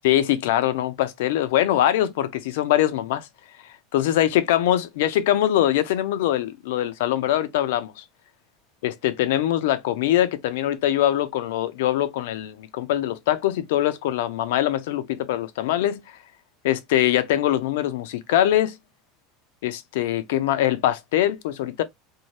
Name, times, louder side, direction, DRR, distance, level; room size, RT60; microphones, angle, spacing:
voice 1, 0.0-3.3 3.9-8.0 8.8-16.0 16.6-18.8 19.6-21.8, left 12 dB, 80° left, 0.5 m, -23 dB
2.7 x 2.1 x 3.1 m
supercardioid pair, 155°, 0 cm